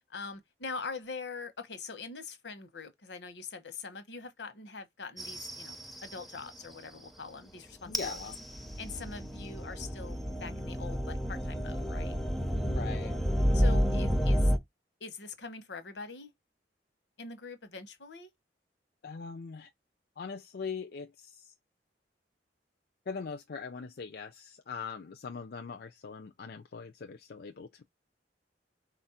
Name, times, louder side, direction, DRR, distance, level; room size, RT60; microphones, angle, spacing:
voice 1, 0.1-8.2 8.8-12.1 13.5-14.5 15.0-16.3 17.2-18.3, left 4 dB, 80° left, 0.9 m, -43 dB
sound 1, 5.2-6.3 7.8-14.6, equal, ahead, 0.5 m, -30 dB
voice 2, 7.9-8.4 12.7-13.1 19.0-19.7 20.2-21.5 23.1-27.8, left 5 dB, 60° left, 0.5 m, -41 dB
4.1 x 2.5 x 4.1 m
head